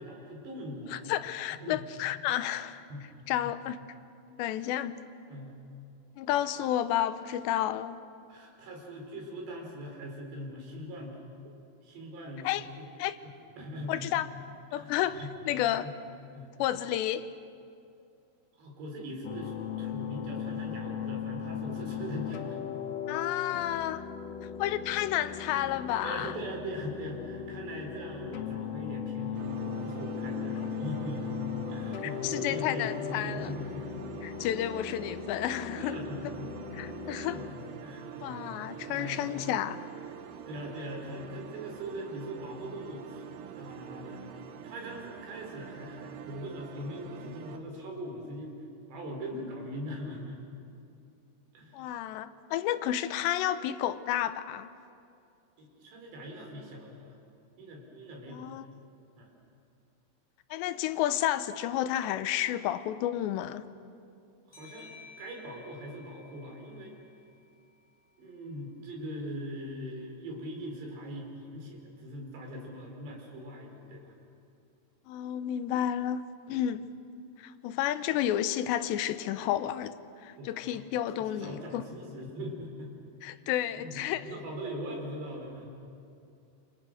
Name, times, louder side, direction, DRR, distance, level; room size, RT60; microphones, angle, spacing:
voice 1, 0.0-1.0 1.6-1.8 2.9-3.1 5.3-5.5 8.3-11.2 11.8-12.5 12.8-12.9 13.6-14.2 14.7-15.3 15.8-15.9 16.3-16.5 18.6-22.6 26.0-33.9 35.8-36.5 37.1-38.6 38.9-39.5 40.5-43.3 43.5-44.3 44.6-48.6 48.9-50.4 51.5-51.9 55.6-57.2 57.6-58.5 59.2-59.3 64.5-64.9 65.2-66.9 68.2-74.1 80.4-80.8 81.1-82.9 83.4-83.5 83.8-85.7, equal, 85° right, 1 dB, 6.4 m, -41 dB
voice 2, 0.9-2.8 3.3-3.8 4.4-5.0 6.2-8.0 12.4-12.7 13.0-13.2 13.9-14.3 14.7-15.9 16.6-17.3 23.1-24.1 24.6-26.3 32.0-33.5 34.2-36.0 36.7-37.4 38.2-39.8 51.7-54.7 58.3-58.7 60.5-63.7 75.1-76.2 76.5-76.9 77.4-80.0 80.2-81.8 83.2-84.3, left 12 dB, 90° left, 12 dB, 3.1 m, -31 dB
sound 1, 19.2-37.5, left 8 dB, 65° left, 2.3 m, -38 dB
sound 2, 29.3-47.6, right 9 dB, 70° right, 2.5 m, -45 dB
sound 3, 64.5-67.9, left 5 dB, 15° left, 6.0 m, -54 dB
28.5 x 26.0 x 6.5 m, 2.5 s
omnidirectional pair, 4.9 m